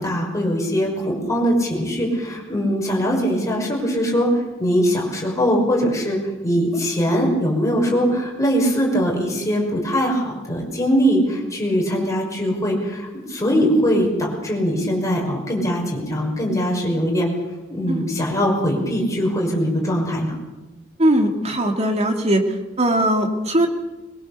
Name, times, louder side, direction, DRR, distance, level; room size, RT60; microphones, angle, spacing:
voice 1, 0.0-4.3 4.6-6.2 6.4-17.3 17.7-20.4, equal, 15° left, -1 dB, 5.9 m, -21 dB
voice 2, 21.0-22.4 22.8-23.7, right 1 dB, 35° right, 4 dB, 2.6 m, -19 dB
22.5 x 22.0 x 6.8 m, 1.1 s
head